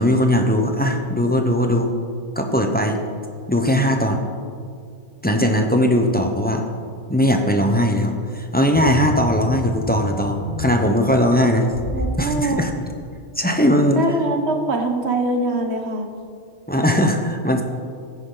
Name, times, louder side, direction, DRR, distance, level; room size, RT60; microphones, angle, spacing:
voice 1, 0.0-1.9 2.4-3.0 3.5-4.2 5.2-6.6 7.1-11.7 12.2-12.7 13.4-14.0 16.7-17.6, equal, 10° left, 3 dB, 0.8 m, -19 dB
sound 1, 8.7-12.1 12.6-12.7, left 1 dB, 30° left, 4.0 m, -29 dB
voice 2, 11.9-12.6 13.9-16.1, right 2 dB, 65° right, 4 dB, 1.5 m, -23 dB
15.5 x 10.5 x 4.0 m, 2.3 s
omnidirectional pair, 1.2 m